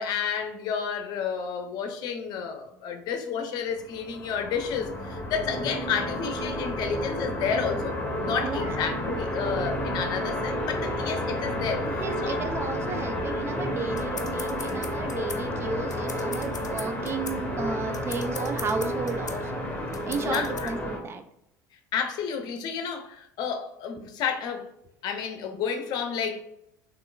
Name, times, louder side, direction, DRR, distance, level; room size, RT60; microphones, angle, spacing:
voice 1, 0.0-11.9 12.2-12.4 20.2-20.7 21.9-24.7 25.0-26.4, left 7 dB, 50° left, 0.7 m, -31 dB
sound 1, 3.8-21.0, equal, 15° left, 1.2 m, -31 dB
voice 2, 8.4-8.8 11.9-19.6 20.1-21.2, right 4 dB, 25° right, 0.5 m, -33 dB
sound 2, 13.6-20.7, left 5 dB, 90° left, 0.4 m, -41 dB
3.6 x 3.1 x 2.4 m
figure-of-eight pair, 70°, 9 cm